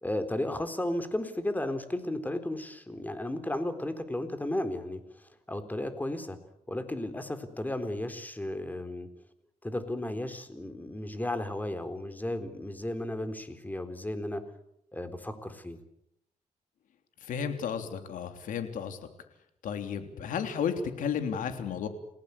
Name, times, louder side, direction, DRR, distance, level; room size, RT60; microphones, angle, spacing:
voice 1, 0.0-6.4 6.7-9.1 9.6-14.4 14.9-15.8, left 1 dB, 10° left, 9 dB, 4.0 m, -34 dB
voice 2, 17.2-19.0 19.6-21.9, left 7 dB, 85° left, 7 dB, 3.3 m, -33 dB
29.5 x 18.0 x 8.4 m, 0.78 s
cardioid pair, 80°, 13 cm